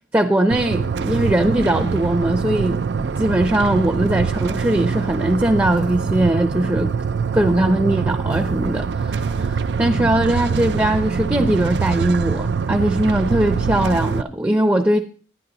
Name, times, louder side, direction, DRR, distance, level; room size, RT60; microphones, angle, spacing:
voice 1, 0.1-6.9 7.3-15.0, right 1 dB, 10° right, 0.6 m, -20 dB
sound 1, 0.5-14.2, right 5 dB, 70° right, 0.4 m, -24 dB
12.0 x 10.0 x 3.9 m
head